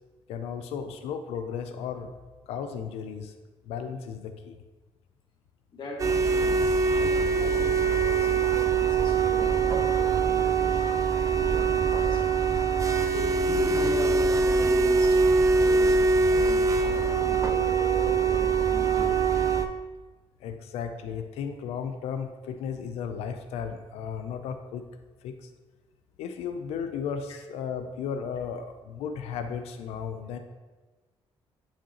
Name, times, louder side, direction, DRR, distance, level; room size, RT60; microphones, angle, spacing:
voice 1, 0.3-2.1 2.5-3.3 3.7-4.6 20.4-24.8 25.2-25.5 26.2-30.4, left 7 dB, 85° left, 7 dB, 0.5 m, -35 dB
voice 2, 5.7-12.2 13.1-19.4, left 2 dB, 50° left, -1 dB, 1.2 m, -39 dB
sound 1, 6.0-19.7, right 4 dB, 30° right, 0.5 m, -23 dB
8.4 x 5.0 x 2.9 m, 1.2 s
cardioid pair, 90°, 10 cm